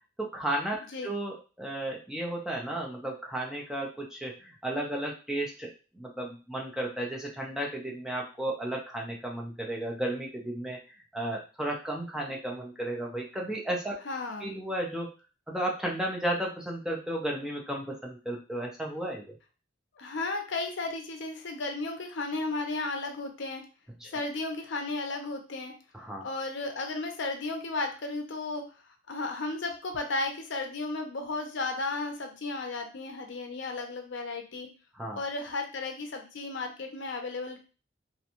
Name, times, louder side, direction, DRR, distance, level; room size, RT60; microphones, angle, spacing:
voice 1, 0.2-10.8 11.1-14.0 14.4-15.1 15.5-19.2 24.0-24.1 25.9-26.3 34.9-35.2, right 1 dB, 5° right, -2 dB, 0.4 m, -34 dB
voice 2, 14.0-14.5 20.0-23.6 24.1-25.7 26.2-28.6 29.1-34.7 35.2-37.6, left 3 dB, 65° left, 4 dB, 0.5 m, -34 dB
2.5 x 2.2 x 2.8 m, 0.34 s
head